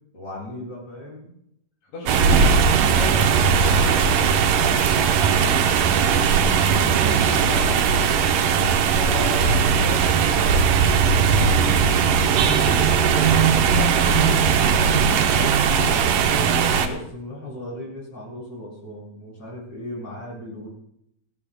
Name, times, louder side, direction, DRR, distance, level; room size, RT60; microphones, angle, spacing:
voice 1, 0.1-1.3 6.7-8.0 11.3-11.7 15.2-20.7, left 1 dB, 30° left, -3 dB, 6.9 m, -36 dB
voice 2, 1.8-7.6 8.9-16.1, left 1 dB, 75° left, -4 dB, 4.2 m, -37 dB
sound 1, 2.1-16.9, right 6 dB, 80° right, 2.6 m, -18 dB
29.0 x 10.5 x 2.2 m, 0.76 s
omnidirectional pair, 3.8 m